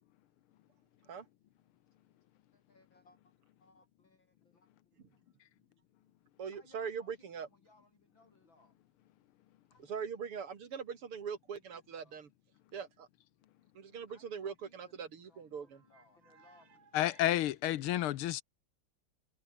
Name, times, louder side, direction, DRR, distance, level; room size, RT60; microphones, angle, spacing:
voice 1, 2.5-3.3 3.6-4.7 6.5-8.8 9.7-10.0 10.5-10.6 11.7-12.2 14.1-16.8, left 2 dB, 60° left, 8.8 m, -66 dB
voice 2, 6.4-7.5 9.9-12.3 12.7-13.1 13.7-15.8 16.3-16.5 17.1-17.2, right 6 dB, 80° right, 3.3 m, -42 dB
voice 3, 16.9-18.4, left 13 dB, 80° left, 1.7 m, -30 dB
omnidirectional pair, 2.4 m